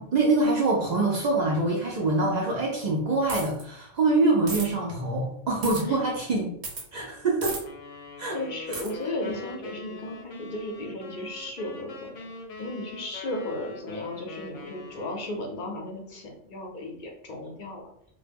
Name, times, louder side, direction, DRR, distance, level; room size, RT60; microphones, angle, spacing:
voice 1, 0.0-6.5 6.9-7.6 8.2-8.4 8.7-8.8 9.3-9.4, right 2 dB, 80° right, -2 dB, 0.3 m, -25 dB
sound 1, 3.3-3.6 4.5-4.7 5.6-5.8 6.6-6.8 7.4-7.6 8.7-8.9, right 3 dB, 50° right, 0.7 m, -33 dB
sound 2, 7.6-15.6, left 3 dB, 80° left, 0.9 m, -42 dB
voice 2, 8.3-12.3 12.6-17.9, left 1 dB, 50° left, 0 dB, 0.6 m, -35 dB
2.1 x 2.1 x 3.3 m, 0.69 s
omnidirectional pair, 1.3 m